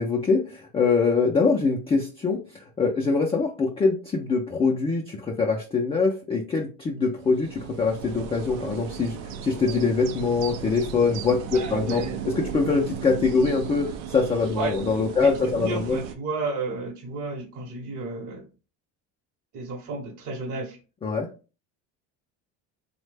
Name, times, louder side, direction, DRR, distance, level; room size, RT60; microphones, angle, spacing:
voice 1, 0.0-16.0 21.0-21.3, left 4 dB, 15° left, 0 dB, 0.3 m, -24 dB
sound 1, 7.2-16.1, right 8 dB, 85° right, 0.5 m, -36 dB
voice 2, 11.5-12.2 14.6-14.7 15.2-15.3 15.6-18.4 19.5-20.8, right 3 dB, 45° right, -1 dB, 0.9 m, -32 dB
3.1 x 2.1 x 3.2 m, 0.34 s
supercardioid pair, 110°, 42 cm